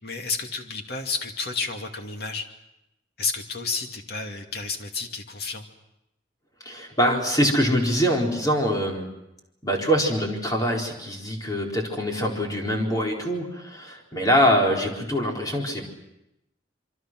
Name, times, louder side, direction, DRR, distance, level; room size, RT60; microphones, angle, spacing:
voice 1, 0.0-2.5 3.2-5.6, left 4 dB, 60° left, 4 dB, 2.5 m, -31 dB
voice 2, 6.6-9.1 9.6-15.9, equal, 20° left, -1 dB, 4.4 m, -24 dB
27.0 x 24.0 x 6.2 m, 0.88 s
head